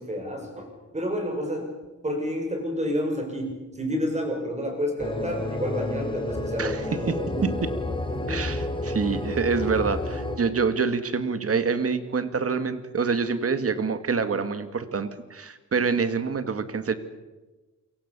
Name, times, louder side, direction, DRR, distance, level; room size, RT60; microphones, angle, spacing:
voice 1, 0.0-1.7 2.0-7.5 8.1-8.5 15.7-15.8, equal, 20° right, 3 dB, 6.4 m, -30 dB
sound 1, 5.0-10.4, left 1 dB, 15° left, 2.9 m, -30 dB
voice 2, 6.6-7.7 8.3-16.9, right 5 dB, 50° right, 10 dB, 2.0 m, -26 dB
28.5 x 23.5 x 6.9 m, 1.2 s
wide cardioid pair, 155°, 30 cm